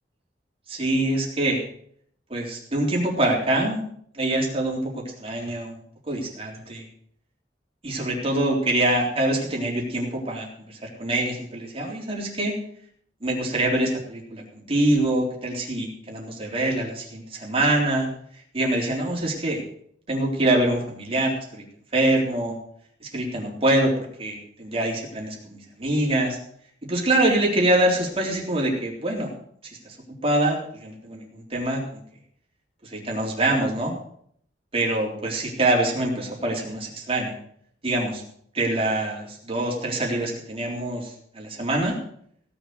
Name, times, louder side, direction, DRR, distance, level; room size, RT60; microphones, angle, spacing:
voice 1, 0.7-1.6 2.3-3.8 4.1-5.8 6.1-6.8 7.8-12.5 13.2-18.1 18.5-19.6 20.1-21.6 21.9-22.6 23.0-26.4 26.8-29.3 29.8-30.0 30.2-32.0 32.8-33.9 34.7-37.3 37.8-38.2 38.5-41.9, right 1 dB, 35° right, -2 dB, 3.8 m, -25 dB
17.0 x 7.2 x 6.9 m, 0.65 s
head